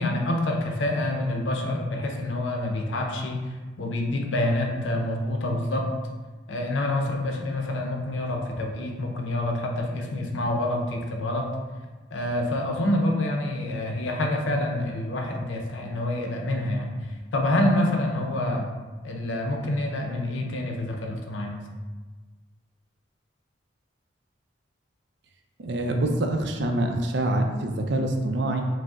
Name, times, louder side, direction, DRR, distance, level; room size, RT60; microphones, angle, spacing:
voice 1, 0.0-3.4 3.8-5.9 6.5-11.5 12.1-16.9 17.3-18.7 19.0-21.6, left 1 dB, 80° left, 2 dB, 0.6 m, -27 dB
voice 2, 25.6-28.6, right 1 dB, 60° right, 3 dB, 0.5 m, -25 dB
5.1 x 2.1 x 3.5 m, 1.3 s
head